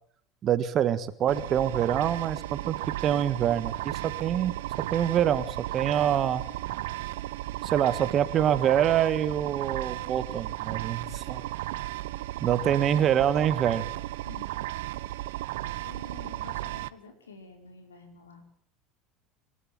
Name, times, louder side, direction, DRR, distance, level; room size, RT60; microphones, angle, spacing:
voice 1, 0.4-2.7 3.0-4.5 4.9-6.4 7.6-11.4 12.4-13.9, right 10 dB, 45° right, 14 dB, 1.6 m, -25 dB
sound 1, 1.3-16.9, right 16 dB, 70° right, 0.8 m, -35 dB
voice 2, 14.2-14.5 15.8-18.4, left 4 dB, 85° left, 6 dB, 4.9 m, -49 dB
26.5 x 12.5 x 8.8 m, 0.63 s
hypercardioid pair, 75°, 0 cm